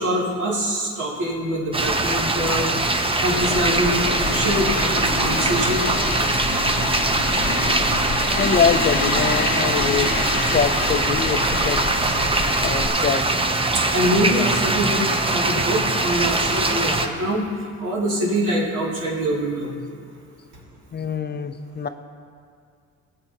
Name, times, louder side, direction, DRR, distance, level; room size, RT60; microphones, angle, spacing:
voice 1, 0.0-5.9 13.7-17.5 17.8-19.7, equal, 80° right, -5 dB, 2.7 m, -24 dB
sound 1, 1.7-17.1, right 2 dB, 20° right, 0.7 m, -22 dB
sound 2, 3.4-12.9, left 5 dB, 85° left, 0.9 m, -28 dB
voice 2, 8.4-11.8 12.6-13.2 20.9-21.9, left 6 dB, 35° left, 9 dB, 0.5 m, -24 dB
18.0 x 7.7 x 2.9 m, 2.3 s
cardioid pair, 90°, 30 cm